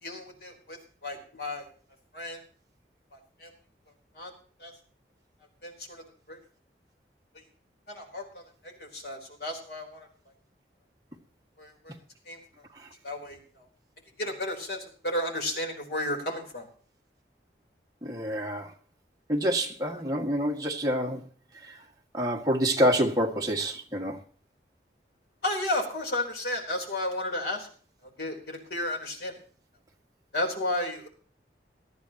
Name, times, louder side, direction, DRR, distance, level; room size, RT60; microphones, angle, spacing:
voice 1, 0.0-1.7 2.1-2.4 3.1-3.5 4.1-4.3 4.6-4.7 5.6-6.4 7.9-10.1 11.6-11.9 12.3-12.4 13.0-13.7 14.2-16.7 19.9-20.0 25.4-27.7 28.2-29.4 30.3-31.1, left 1 dB, 65° left, 2 dB, 3.8 m, -33 dB
voice 2, 18.0-18.7 19.3-21.2 22.1-24.2, equal, 20° right, 0 dB, 1.9 m, -27 dB
19.0 x 13.0 x 2.9 m, 0.43 s
head